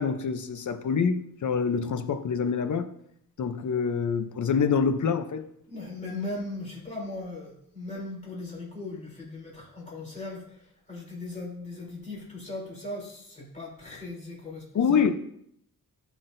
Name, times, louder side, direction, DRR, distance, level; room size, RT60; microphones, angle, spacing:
voice 1, 0.0-2.9 3.4-5.4 14.7-15.1, left 6 dB, 55° left, 0.8 m, -26 dB
voice 2, 5.7-15.1, left 2 dB, 20° left, 3.4 m, -38 dB
15.0 x 6.0 x 2.7 m
wide cardioid pair, 160°, 35 cm